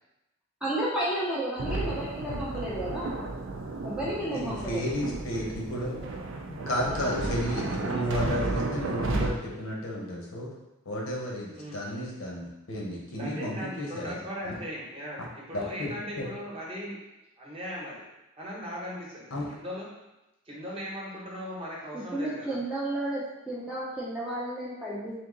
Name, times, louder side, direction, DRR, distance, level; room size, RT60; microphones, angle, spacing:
voice 1, 0.6-3.2 3.8-4.9 21.9-25.1, right 1 dB, 5° right, -7 dB, 0.5 m, -32 dB
sound 1, 1.6-9.3, right 2 dB, 60° right, 0.4 m, -33 dB
voice 2, 4.3-5.9 6.5-10.5 10.8-14.2 14.4-14.5 15.2-15.3 15.5-16.3 19.3-19.4, equal, 65° left, -2 dB, 0.9 m, -32 dB
voice 3, 5.7-6.2 6.6-6.7 11.6-11.8 13.2-17.0 17.4-18.0 18.4-19.9 20.4-22.6, equal, 25° right, -5 dB, 0.9 m, -38 dB
3.5 x 2.8 x 3.8 m, 0.95 s
head